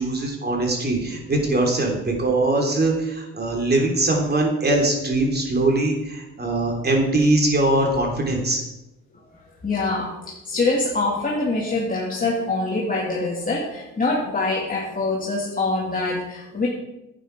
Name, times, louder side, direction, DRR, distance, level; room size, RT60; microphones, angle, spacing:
voice 1, 0.0-8.6, right 2 dB, 35° right, 1 dB, 3.2 m, -21 dB
voice 2, 9.6-16.7, left 3 dB, 25° left, -3 dB, 2.1 m, -24 dB
11.0 x 8.8 x 4.7 m, 0.95 s
cardioid pair, 90°, 30 cm